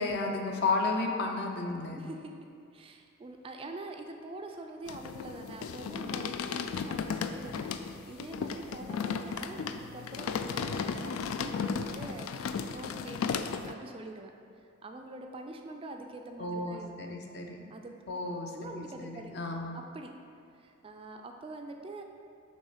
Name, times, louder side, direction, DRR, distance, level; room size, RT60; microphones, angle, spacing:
voice 1, 0.0-2.0 16.4-17.7 18.1-19.8, left 3 dB, 55° left, 2 dB, 0.6 m, -33 dB
voice 2, 1.9-2.3 2.7-14.3 14.8-16.9 17.7-18.2 18.5-19.3 19.7-20.1 20.6-22.0, right 2 dB, 25° right, 3 dB, 0.3 m, -45 dB
sound 1, 4.9-13.7, left 6 dB, 85° left, 0.3 m, -35 dB
6.2 x 3.2 x 5.7 m, 2.3 s
head